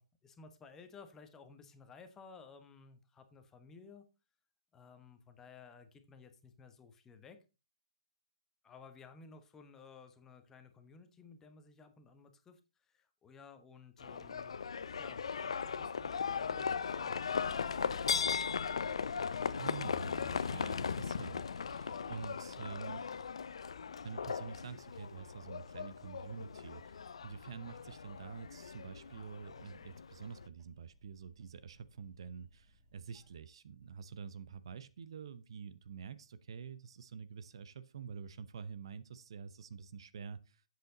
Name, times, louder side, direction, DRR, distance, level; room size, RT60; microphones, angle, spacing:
voice 1, 0.0-4.1 4.7-7.4 8.6-14.6 15.0-17.3, left 5 dB, 15° left, 8 dB, 1.1 m, -56 dB
Livestock farm animals working animals, 14.0-30.5, left 6 dB, 60° left, 0.6 m, -38 dB
sound 1, 14.8-33.4, right 2 dB, 20° right, 1.7 m, -63 dB
voice 2, 19.6-23.0 24.0-40.6, right 6 dB, 55° right, 15 dB, 0.6 m, -47 dB
7.9 x 7.7 x 3.9 m, 0.28 s
figure-of-eight pair, 130°, 3 cm